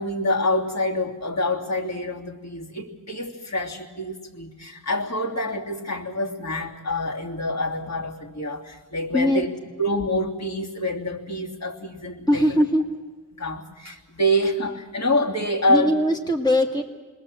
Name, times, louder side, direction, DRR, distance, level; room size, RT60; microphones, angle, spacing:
voice 1, 0.0-9.5 9.8-12.6 13.3-15.9, left 1 dB, 55° left, -1 dB, 2.9 m, -26 dB
voice 2, 12.3-12.9 15.7-16.8, left 1 dB, 15° left, 1 dB, 1.8 m, -21 dB
27.5 x 21.0 x 7.6 m, 1.3 s
wide cardioid pair, 155°, 32 cm